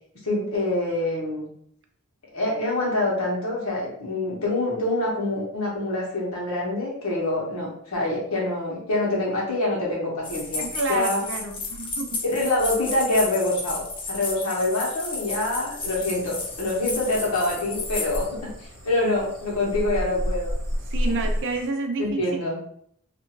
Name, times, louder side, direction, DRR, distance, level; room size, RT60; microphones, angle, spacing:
voice 1, 0.2-1.5 2.3-11.2 12.2-18.5 18.8-20.5 22.0-22.6, left 2 dB, 70° left, -3 dB, 1.1 m, -25 dB
sound 1, 10.2-18.3, left 3 dB, 25° left, 0.5 m, -33 dB
voice 2, 10.6-12.2 20.9-22.2, right 3 dB, 55° right, 4 dB, 0.5 m, -29 dB
sound 2, 15.8-21.7, equal, 85° right, 1.0 m, -32 dB
2.6 x 2.5 x 2.9 m, 0.65 s
head